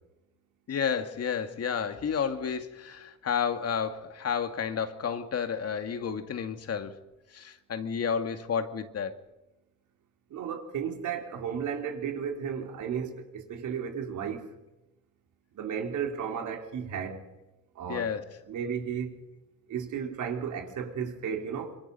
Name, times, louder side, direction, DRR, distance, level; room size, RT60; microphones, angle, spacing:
voice 1, 0.7-7.0 7.3-9.2 17.9-18.2, left 7 dB, 55° left, 2.2 m, -31 dB
voice 2, 10.3-14.5 15.5-17.3 17.8-18.1 18.5-19.2 19.7-21.8, right 7 dB, 80° right, 4.0 m, -34 dB
26.0 x 24.0 x 5.6 m
cardioid pair, 90°, 30 cm